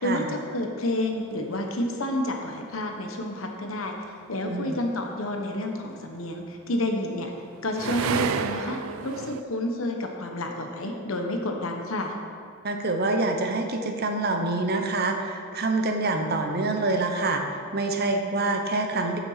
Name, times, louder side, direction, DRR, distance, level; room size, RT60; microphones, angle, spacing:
voice 1, 0.0-3.9 4.3-7.3 7.6-12.1, left 1 dB, 85° left, 3 dB, 1.2 m, -29 dB
sound 1, 1.3-1.4 6.4-9.4, right 6 dB, 90° right, 0.4 m, -31 dB
voice 2, 4.4-4.8 12.6-17.4 17.7-19.2, right 2 dB, 50° right, 4 dB, 0.9 m, -26 dB
8.5 x 7.0 x 5.7 m, 2.3 s
head